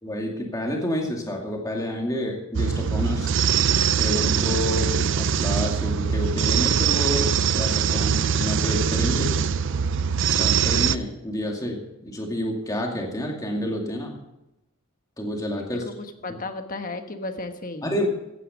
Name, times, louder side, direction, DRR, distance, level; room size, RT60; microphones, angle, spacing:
voice 1, 0.0-3.3 4.0-9.4 10.3-14.2 15.2-15.8 16.3-16.4 17.8-18.1, left 1 dB, 15° left, 0 dB, 2.4 m, -29 dB
sound 1, 2.5-11.0, right 7 dB, 55° right, 0.5 m, -22 dB
voice 2, 15.8-17.9, left 2 dB, 40° left, 6 dB, 1.3 m, -34 dB
15.5 x 9.9 x 5.2 m, 0.91 s
head